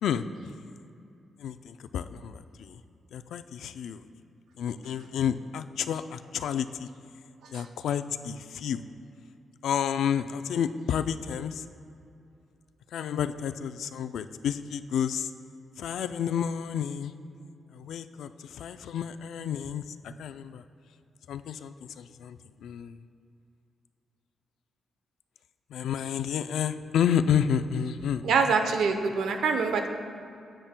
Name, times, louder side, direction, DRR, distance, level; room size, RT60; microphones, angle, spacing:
voice 1, 1.4-2.8 3.1-4.0 4.6-6.9 7.5-8.8 9.6-11.6 12.9-15.3 15.8-17.1 17.7-20.6 21.3-23.0 25.7-28.3, left 8 dB, 85° left, 11 dB, 0.3 m, -30 dB
voice 2, 28.2-29.9, right 5 dB, 85° right, 6 dB, 0.7 m, -25 dB
15.5 x 8.8 x 2.2 m, 2.6 s
wide cardioid pair, 180°, 0 cm